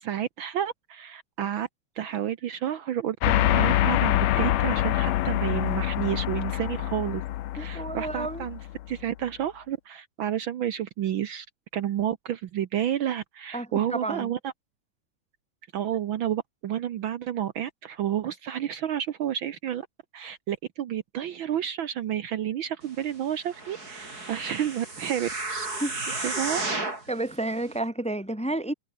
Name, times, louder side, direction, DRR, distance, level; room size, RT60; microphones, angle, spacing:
voice 1, 0.0-1.7 2.0-7.2 7.5-8.6 8.9-11.5 11.7-14.5 15.7-19.9 20.1-25.7 26.2-26.6, right 10 dB, 85° right, 1.0 m, -30 dB
sound 1, 3.2-9.0, left 14 dB, 70° left, 1.9 m, -25 dB
voice 2, 7.6-8.4 13.5-14.3 25.8-26.4 27.1-28.7, right 2 dB, ahead, 3.0 m, -31 dB
sound 2, 23.5-27.1 27.7-27.8, right 2 dB, 30° right, 5.8 m, -33 dB
omnidirectional pair, 3.6 m